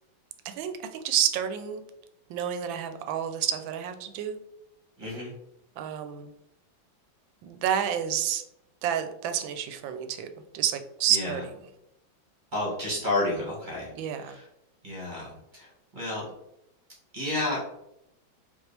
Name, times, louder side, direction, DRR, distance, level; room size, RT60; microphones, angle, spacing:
voice 1, 0.4-1.8 2.3-4.4 5.8-6.3 7.4-8.4 8.8-10.3 10.5-11.6 13.9-14.4, right 9 dB, 80° right, 8 dB, 1.3 m, -29 dB
voice 2, 5.0-5.3 11.1-11.4 12.5-13.9 14.2-14.5 14.8-16.2 17.1-17.6, left 2 dB, 30° right, -3 dB, 1.2 m, -31 dB
5.2 x 2.9 x 3.2 m, 0.83 s
omnidirectional pair, 2.1 m